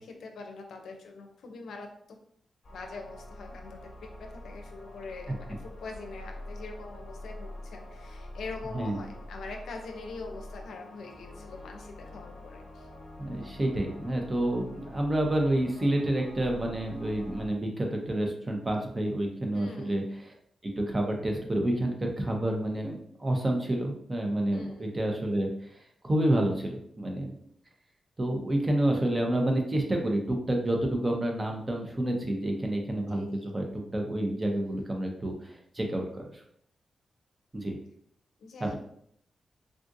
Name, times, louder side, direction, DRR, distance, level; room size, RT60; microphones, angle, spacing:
voice 1, 0.0-2.2 2.7-12.9 19.5-19.9 24.5-24.9 33.1-33.4 38.4-38.7, left 3 dB, 85° left, 4 dB, 0.5 m, -43 dB
sound 1, 2.6-17.5, left 1 dB, 35° left, 1.3 m, -45 dB
voice 2, 13.2-20.3 20.6-27.3 28.2-33.7 33.9-36.4 37.5-37.8 38.6-38.7, right 1 dB, 25° right, 2 dB, 0.7 m, -29 dB
3.6 x 2.5 x 2.6 m, 0.67 s
cardioid pair, 90°, 0 cm